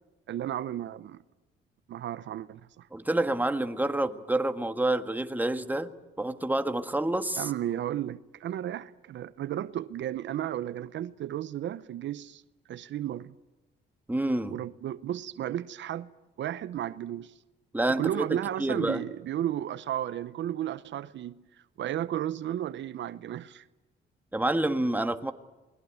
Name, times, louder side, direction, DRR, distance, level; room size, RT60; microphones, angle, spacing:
voice 1, 0.3-1.2 1.9-2.9 7.4-12.4 12.7-13.3 14.5-16.1 16.4-17.3 18.0-23.7, right 11 dB, 65° right, 0.8 m, -33 dB
voice 2, 2.9-5.9 6.2-7.5 14.1-14.5 17.7-19.0 24.3-25.3, right 1 dB, 10° right, 1.6 m, -28 dB
28.5 x 21.0 x 9.4 m
cardioid pair, 90°, 20 cm